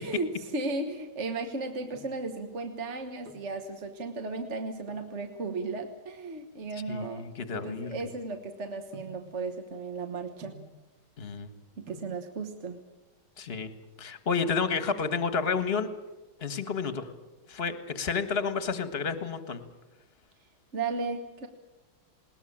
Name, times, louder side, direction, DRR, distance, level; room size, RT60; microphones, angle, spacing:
voice 1, 0.0-7.3 7.6-10.6 11.8-12.8 20.7-21.5, right 3 dB, 40° right, 6 dB, 1.4 m, -35 dB
sound 1, 1.9-2.3 3.0-3.6 4.8-5.2 5.9-8.3 8.9-9.3 10.4-10.8 11.6-11.7 11.9-12.2 13.3-13.9 14.2-14.3 14.5-14.6 15.0-15.4 15.7-16.8 17.2-17.6 18.0-19.1 19.4-19.5, right 1 dB, 65° right, 4.0 m, -52 dB
voice 2, 6.7-8.1 11.2-11.5 13.4-13.7 14.0-15.9 16.4-17.1 17.5-19.6, left 5 dB, 30° left, 11 dB, 1.5 m, -31 dB
20.5 x 19.5 x 8.7 m, 1.1 s
omnidirectional pair, 2.3 m